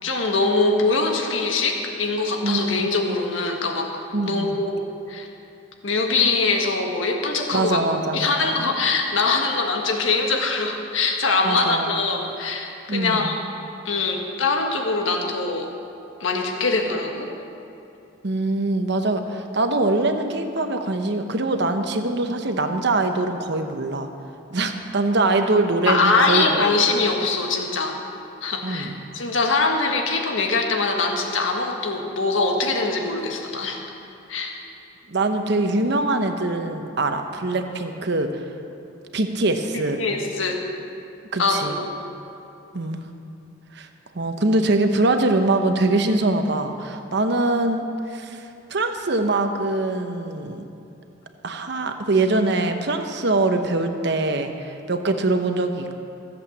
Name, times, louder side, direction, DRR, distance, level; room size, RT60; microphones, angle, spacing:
voice 1, 0.0-3.9 4.2-5.3 5.8-7.8 8.1-13.3 13.8-15.7 16.2-17.3 25.9-28.0 28.4-33.8 34.3-34.6 39.7-40.6 41.4-41.9, left 3 dB, 85° left, 2 dB, 1.6 m, -23 dB
voice 2, 2.4-3.2 4.1-4.6 7.5-8.7 11.4-12.0 12.9-13.3 18.2-24.1 24.5-26.7 28.6-29.0 35.1-38.4 39.1-40.0 41.3-41.7 42.7-43.0 43.7-43.9 44.1-50.7 51.4-56.0, right 2 dB, 60° right, 6 dB, 1.0 m, -23 dB
15.5 x 8.1 x 7.2 m, 2.7 s
head